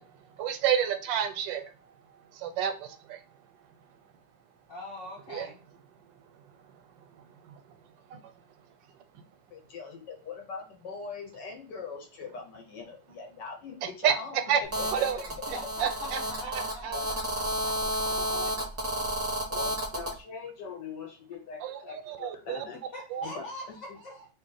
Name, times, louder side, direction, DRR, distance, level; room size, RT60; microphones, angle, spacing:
voice 1, 0.0-4.1 5.3-5.5 5.9-8.3 9.1-9.2 13.8-14.6 14.9-15.2 15.8-17.0 18.2-18.5 21.6-22.6 23.1-23.3, right 8 dB, 90° right, 8 dB, 1.3 m, -32 dB
voice 2, 4.7-5.6 15.5-19.1 22.9-24.3, left 1 dB, 55° left, -3 dB, 1.1 m, -43 dB
voice 3, 9.5-14.4 14.8-15.2 16.9-17.1 19.5-22.8 23.2-23.8, left 5 dB, 75° left, 1 dB, 1.4 m, -42 dB
Telephone, 14.7-20.1, equal, 20° right, 0.4 m, -31 dB
3.1 x 2.7 x 3.8 m, 0.34 s
omnidirectional pair, 2.0 m